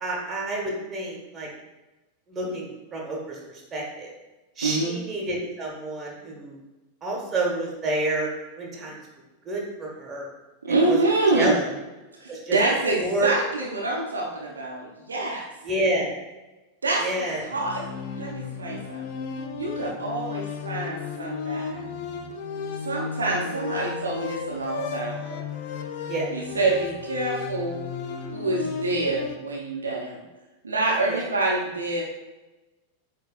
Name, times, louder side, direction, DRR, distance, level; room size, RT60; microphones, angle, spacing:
voice 1, 0.0-1.5 2.3-4.1 4.6-6.6 7.0-8.3 8.6-9.0 9.4-10.3 10.7-11.0 11.3-11.7 12.3-12.6 13.0-13.3 15.6-16.2 17.0-17.5 26.1-26.3 31.1-31.2, right 2 dB, 20° right, -2 dB, 1.4 m, -29 dB
voice 2, 4.6-5.0 10.6-11.6 12.2-15.5 16.8-17.9 18.1-19.0 19.6-21.8 22.8-25.4 26.3-27.8 28.3-30.2 30.6-32.0, right 2 dB, 75° right, -3 dB, 0.7 m, -26 dB
sound 1, 17.5-29.4, left 6 dB, 45° left, 0.4 m, -34 dB
8.1 x 2.7 x 2.4 m, 1.1 s
figure-of-eight pair, 90°, 0 cm